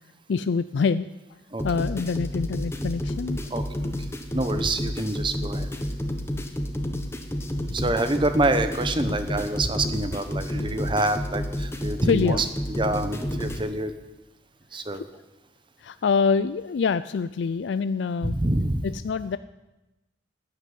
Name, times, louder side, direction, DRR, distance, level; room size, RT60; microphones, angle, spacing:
voice 1, 0.3-1.1 1.6-3.4 12.1-12.4 14.9-15.0 15.8-18.4 18.8-19.4, left 5 dB, 70° left, 14 dB, 0.4 m, -25 dB
sound 1, 1.6-13.6, equal, 15° left, 1.2 m, -30 dB
voice 2, 3.5-5.7 7.7-13.9 14.7-15.0 18.2-18.9, right 2 dB, 25° right, 9 dB, 0.9 m, -26 dB
12.5 x 9.8 x 9.4 m, 1.0 s
head